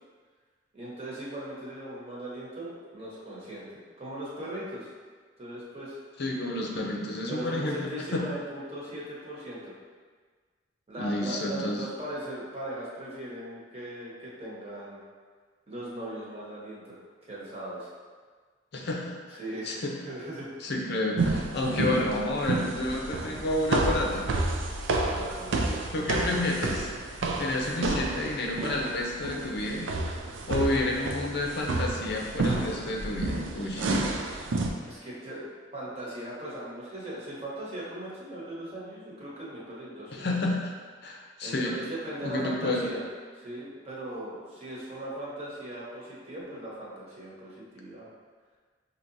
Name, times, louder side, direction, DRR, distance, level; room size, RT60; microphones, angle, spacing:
voice 1, 0.7-4.9 5.4-6.0 7.3-9.7 10.9-15.0 15.7-17.0 17.2-17.9 19.3-20.5 24.9-25.8 34.9-40.3 41.4-43.0 43.3-48.1, right 1 dB, 30° right, -7 dB, 1.1 m, -39 dB
voice 2, 6.2-8.2 11.0-11.8 18.7-19.4 19.6-19.9 20.6-24.3 25.9-29.9 30.5-34.0 40.1-40.7 41.0-41.7 42.2-42.9, left 1 dB, 60° left, -1 dB, 0.6 m, -30 dB
sound 1, 21.2-34.7, right 2 dB, 85° right, 0.4 m, -30 dB
5.9 x 2.9 x 2.6 m, 1.5 s
head